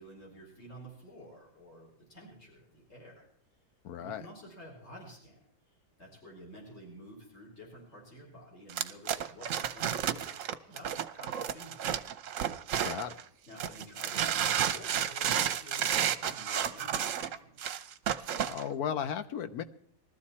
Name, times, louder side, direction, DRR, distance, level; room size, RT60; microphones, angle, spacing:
voice 1, 0.0-3.2 4.0-5.4 6.0-11.9 13.5-17.8, equal, 40° left, -2 dB, 4.5 m, -51 dB
voice 2, 3.8-4.2 12.8-13.2 18.4-19.6, left 8 dB, 70° left, 9 dB, 1.2 m, -35 dB
sound 1, 8.7-13.2 13.6-18.6, right 9 dB, 60° right, 1.0 m, -31 dB
20.5 x 13.5 x 4.3 m, 0.67 s
omnidirectional pair, 1.7 m